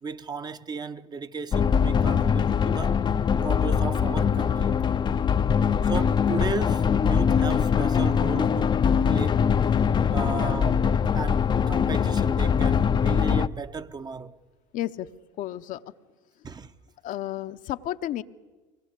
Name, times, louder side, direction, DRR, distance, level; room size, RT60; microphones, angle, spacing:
voice 1, 0.0-3.1 3.4-4.9 5.8-8.7 9.1-9.5 10.1-14.4 16.4-16.7, right 5 dB, 25° right, 0.8 m, -35 dB
sound 1, 1.5-13.5, left 7 dB, 30° left, 0.6 m, -22 dB
voice 2, 10.3-10.7 14.7-15.1 15.4-15.8 17.0-18.2, left 13 dB, 55° left, 0.8 m, -32 dB
24.0 x 18.5 x 8.3 m
hypercardioid pair, 80°, 16 cm